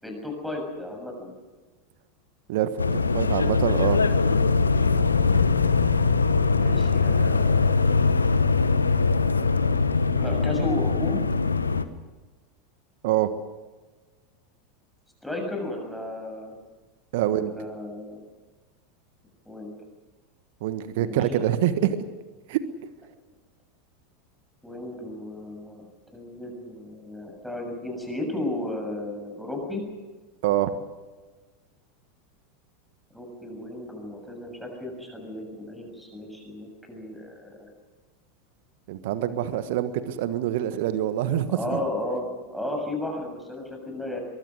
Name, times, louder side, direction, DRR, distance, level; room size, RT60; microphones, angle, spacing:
voice 1, 0.0-1.3 6.5-7.6 10.2-11.2 15.2-16.6 17.3-18.2 19.5-19.8 20.9-21.2 24.6-25.8 26.1-29.8 33.1-37.7 41.5-44.2, left 1 dB, ahead, 1 dB, 6.9 m, -34 dB
sound 1, 2.8-11.8, left 4 dB, 85° left, 1.1 m, -22 dB
voice 2, 3.1-4.0 13.0-13.3 17.1-17.5 20.6-22.0 22.5-22.6 30.4-30.7 38.9-41.8, right 12 dB, 60° right, 12 dB, 1.4 m, -25 dB
23.0 x 23.0 x 6.4 m, 1.3 s
figure-of-eight pair, 85°, 0 cm